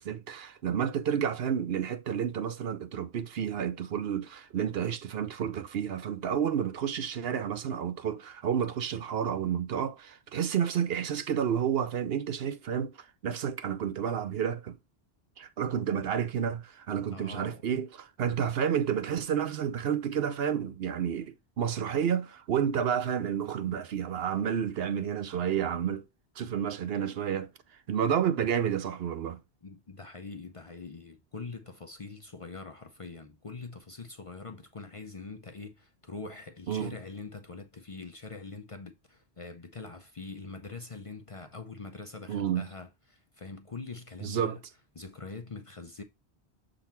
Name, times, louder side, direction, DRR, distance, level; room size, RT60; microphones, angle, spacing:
voice 1, 0.0-12.9 13.2-14.8 15.4-26.0 26.4-27.5 27.9-29.4 36.7-37.0 42.3-42.7 44.2-44.6, right 8 dB, 70° right, 0.9 m, -30 dB
voice 2, 17.1-17.6 29.6-44.6 45.0-46.0, left 4 dB, 40° left, 0.6 m, -43 dB
6.9 x 3.9 x 4.4 m
omnidirectional pair, 1.1 m